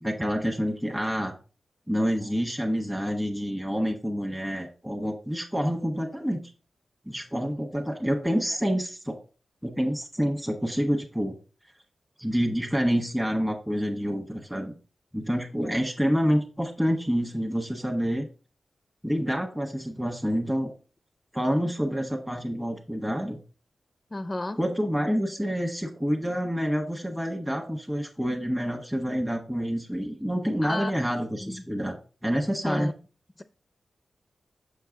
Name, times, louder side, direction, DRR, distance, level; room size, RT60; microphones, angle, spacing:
voice 1, 0.0-1.3 1.9-6.4 7.1-9.1 9.6-11.3 12.2-14.7 15.1-18.3 19.0-20.7 21.3-23.4 24.5-32.0 32.2-32.9, equal, 10° right, 1.4 m, -27 dB
voice 2, 24.1-24.6 30.6-30.9 31.4-31.6 32.7-32.9 33.4-33.5, left 2 dB, 30° left, 0.4 m, -32 dB
6.9 x 4.6 x 3.9 m
cardioid pair, 45°, 0 cm